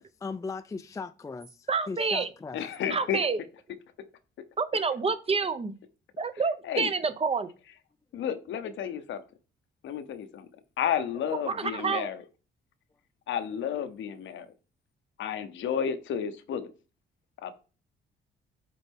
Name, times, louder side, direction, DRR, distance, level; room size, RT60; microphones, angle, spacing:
voice 1, 0.2-2.6, left 4 dB, 15° left, 0.4 m, -38 dB
voice 2, 1.7-2.3 2.9-3.4 4.6-5.7 6.2-7.5 11.5-12.1, right 4 dB, 30° right, 0.7 m, -28 dB
voice 3, 2.5-3.3 6.6-6.9 8.1-9.2 9.8-10.5 10.8-12.2 13.3-14.5 15.2-16.7 17.4-17.5, left 8 dB, 75° left, 0.9 m, -31 dB
7.8 x 4.1 x 3.6 m
cardioid pair, 90°, 20 cm